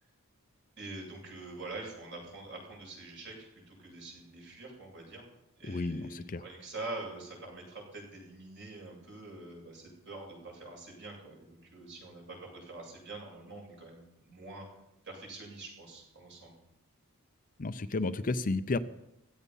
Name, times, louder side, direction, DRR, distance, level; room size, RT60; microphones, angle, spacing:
voice 1, 0.8-5.3 5.6-14.6 15.0-16.5, right 2 dB, 55° right, -1 dB, 8.0 m, -45 dB
voice 2, 5.6-6.4 17.6-18.8, left 3 dB, 40° left, 12 dB, 0.6 m, -32 dB
16.5 x 14.0 x 5.5 m, 0.87 s
head